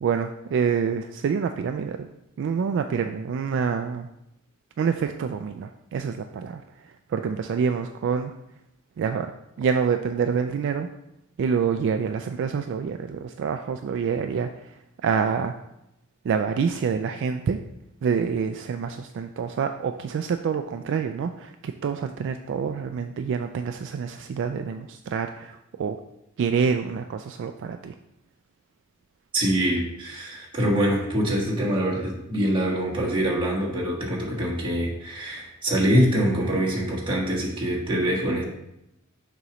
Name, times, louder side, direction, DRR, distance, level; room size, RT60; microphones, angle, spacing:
voice 1, 0.0-2.1 2.4-4.1 4.8-8.3 9.0-9.3 9.6-10.9 11.4-14.7 15.0-15.5 16.2-17.6 18.0-26.0 26.4-27.9, right 6 dB, 60° right, 7 dB, 0.3 m, -27 dB
voice 2, 29.3-38.4, equal, 25° right, -4 dB, 1.5 m, -24 dB
6.7 x 3.1 x 4.9 m, 0.84 s
head